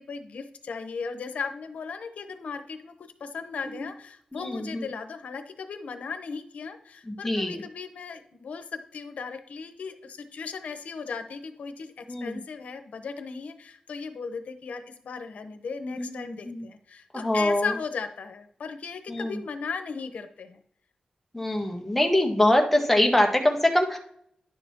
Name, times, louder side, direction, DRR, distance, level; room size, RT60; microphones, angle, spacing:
voice 1, 0.0-2.9 3.2-20.6, left 5 dB, 80° left, 7 dB, 0.9 m, -37 dB
voice 2, 4.3-4.9 7.1-7.6 12.1-12.4 15.8-16.7 17.1-17.7 19.1-19.4 21.3-24.0, left 1 dB, 5° left, 2 dB, 1.5 m, -24 dB
11.0 x 6.7 x 2.9 m, 0.67 s
wide cardioid pair, 85°, 2 cm